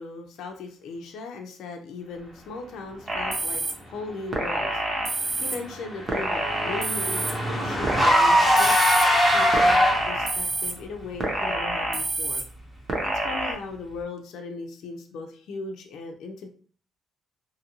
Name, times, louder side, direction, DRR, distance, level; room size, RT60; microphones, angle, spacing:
voice 1, 0.0-4.8 5.4-8.8 9.3-12.4 13.0-16.5, left 3 dB, 80° left, 3 dB, 0.4 m, -38 dB
sound 1, 3.1-3.7 4.3-5.6 6.1-7.3 7.8-9.0 9.5-10.7 11.2-12.4 12.9-13.5, right 2 dB, 45° right, 0.7 m, -27 dB
Car / Engine, 5.3-10.3, equal, 5° right, 0.9 m, -22 dB
2.6 x 2.5 x 2.9 m, 0.43 s
cardioid pair, 90°, 0 cm